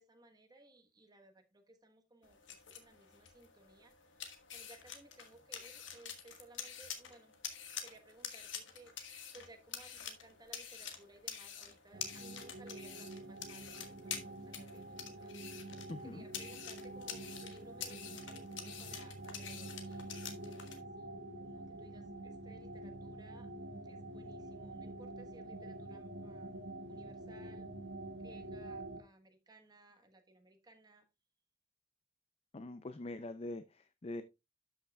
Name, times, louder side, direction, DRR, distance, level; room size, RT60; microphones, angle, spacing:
voice 1, 0.0-7.4 7.8-9.0 9.3-23.5 23.8-26.6 26.9-27.7 28.2-31.1, right 2 dB, 20° right, 5 dB, 1.2 m, -61 dB
sound 1, 2.2-20.8, left 8 dB, 85° left, 1.3 m, -48 dB
sound 2, 11.9-29.0, right 2 dB, 70° right, 1.1 m, -47 dB
voice 2, 15.9-16.2 32.5-34.2, left 2 dB, 30° left, 11 dB, 0.4 m, -43 dB
12.0 x 5.8 x 2.3 m, 0.24 s
head